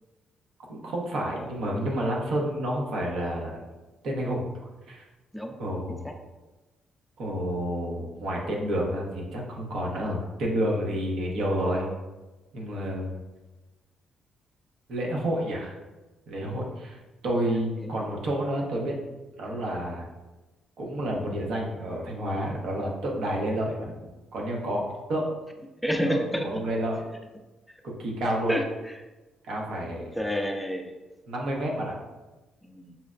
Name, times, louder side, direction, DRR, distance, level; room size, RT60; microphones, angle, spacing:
voice 1, 0.7-3.6 4.0-4.4 4.9-5.0 5.6-6.1 7.2-11.9 12.5-13.2 14.9-15.8 16.3-19.0 19.4-20.1 20.8-23.9 24.3-25.3 26.1-26.2 26.4-27.1 28.0-28.5 29.5-30.0 31.3-32.0, right 1 dB, 75° right, -1 dB, 0.8 m, -29 dB
voice 2, 25.8-26.5 28.5-28.9 30.2-30.9 32.6-33.0, equal, 5° left, 3 dB, 0.4 m, -29 dB
5.5 x 2.1 x 2.4 m, 1.1 s
cardioid pair, 90°, 0 cm